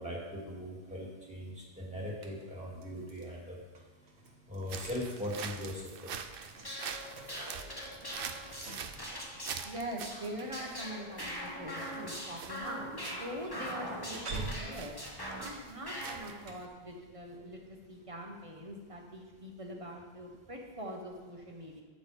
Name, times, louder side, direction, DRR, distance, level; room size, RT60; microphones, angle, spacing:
voice 1, 0.0-3.5 4.5-6.1, left 1 dB, 5° right, -4 dB, 2.5 m, -40 dB
sound 1, 2.1-3.3 3.7-16.6, right 3 dB, 90° right, 1.4 m, -49 dB
sound 2, 4.6-16.7, right 7 dB, 65° right, 0.8 m, -45 dB
sound 3, 6.5-15.6 15.9-16.2, equal, 20° left, 1.6 m, -42 dB
voice 2, 9.6-15.0 15.4-21.8, equal, 30° right, 1 dB, 1.3 m, -43 dB
12.0 x 8.9 x 3.6 m, 1.3 s
omnidirectional pair, 1.1 m